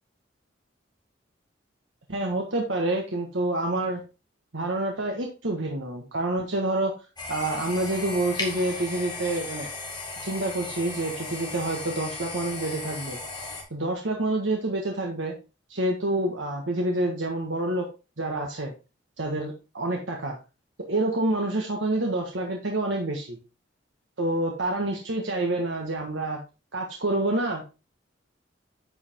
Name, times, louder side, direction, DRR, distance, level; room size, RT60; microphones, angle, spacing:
voice 1, 2.1-4.0 4.5-6.9 7.3-9.7 10.2-13.2 13.7-15.3 15.7-17.8 18.2-18.7 19.2-20.4 20.9-23.4 24.2-26.4 26.7-27.6, right 2 dB, 85° right, 1 dB, 1.5 m, -27 dB
sound 1, 7.2-13.6, left 3 dB, 25° left, 2.1 m, -36 dB
9.7 x 4.9 x 3.6 m, 0.29 s
head